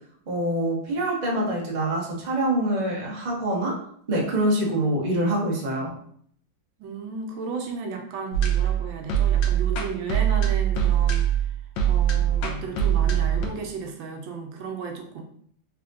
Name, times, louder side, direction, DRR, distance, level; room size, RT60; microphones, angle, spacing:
voice 1, 0.3-3.8 4.1-5.9, right 1 dB, 40° right, -3 dB, 0.6 m, -25 dB
voice 2, 6.8-11.3 11.9-15.2, right 4 dB, 80° right, 3 dB, 1.4 m, -34 dB
sound 1, 8.3-13.5, right 9 dB, 75° left, 1.3 m, -22 dB
3.6 x 3.4 x 2.5 m, 0.63 s
omnidirectional pair, 2.1 m